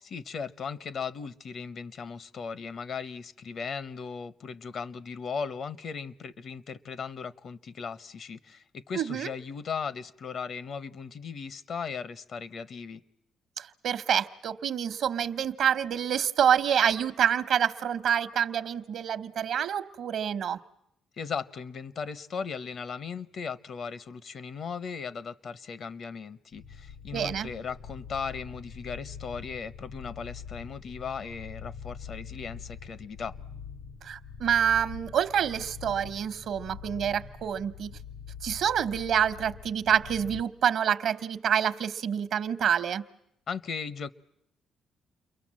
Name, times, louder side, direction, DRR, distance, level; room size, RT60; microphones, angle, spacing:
voice 1, 0.0-13.0 21.2-33.4 43.5-44.1, left 6 dB, 60° left, 0.9 m, -37 dB
voice 2, 9.0-9.3 13.6-20.6 27.1-27.5 34.0-38.0 38.4-43.0, right 8 dB, 70° right, 1.0 m, -27 dB
sound 1, 26.5-40.4, left 7 dB, 85° left, 2.4 m, -44 dB
29.5 x 23.0 x 7.5 m
cardioid pair, 90°, 0 cm